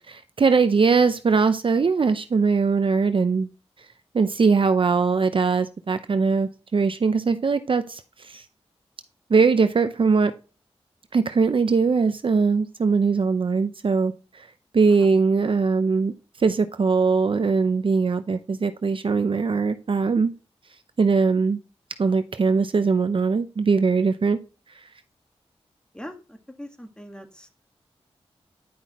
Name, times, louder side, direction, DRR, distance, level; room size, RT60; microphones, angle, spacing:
voice 1, 0.1-3.5 4.1-8.4 9.3-10.3 11.1-14.5 14.7-16.1 16.4-20.3 21.0-21.6 22.0-24.4, right 4 dB, 50° right, 10 dB, 0.6 m, -21 dB
voice 2, 25.9-27.5, equal, 10° left, 5 dB, 1.6 m, -41 dB
10.0 x 5.6 x 3.0 m, 0.34 s
cardioid pair, 65°, 11 cm